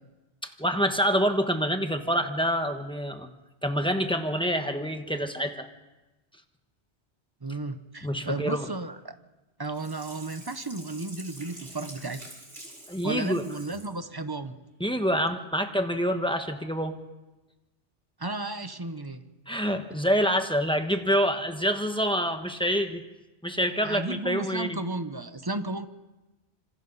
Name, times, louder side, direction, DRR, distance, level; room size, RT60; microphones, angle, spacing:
voice 1, 0.6-3.3 3.6-5.7 8.0-8.6 12.9-13.4 14.8-17.0 19.5-23.0 23.4-24.8, equal, 5° left, 5 dB, 1.3 m, -26 dB
voice 2, 7.4-9.1 9.6-12.3 13.0-14.6 18.2-19.2 23.8-25.9, right 2 dB, 20° right, 10 dB, 0.8 m, -34 dB
Sink (filling or washing), 9.7-13.9 14.4-14.5, right 1 dB, 80° right, 4.6 m, -46 dB
26.5 x 26.0 x 4.1 m, 1.1 s
omnidirectional pair, 1.2 m